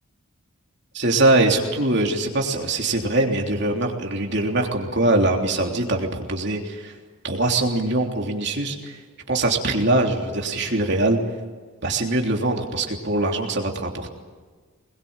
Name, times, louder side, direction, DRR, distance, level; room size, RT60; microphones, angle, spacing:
voice 1, 0.9-6.9 7.2-9.0 9.3-11.2 11.8-14.1, right 2 dB, 50° right, 1 dB, 3.3 m, -22 dB
25.5 x 21.5 x 8.9 m, 1.5 s
head